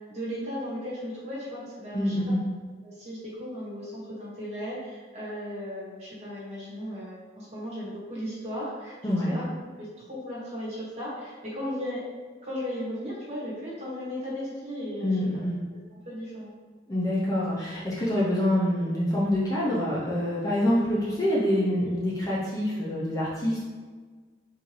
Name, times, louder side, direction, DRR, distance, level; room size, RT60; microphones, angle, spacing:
voice 1, 0.1-2.1 2.8-9.4 9.8-12.0 12.4-15.4 16.0-16.5, equal, 35° right, -8 dB, 1.3 m, -36 dB
voice 2, 1.9-2.4 9.0-9.4 15.0-15.6 16.9-23.6, left 1 dB, 20° left, -8 dB, 0.5 m, -26 dB
3.7 x 2.7 x 3.1 m, 1.4 s
head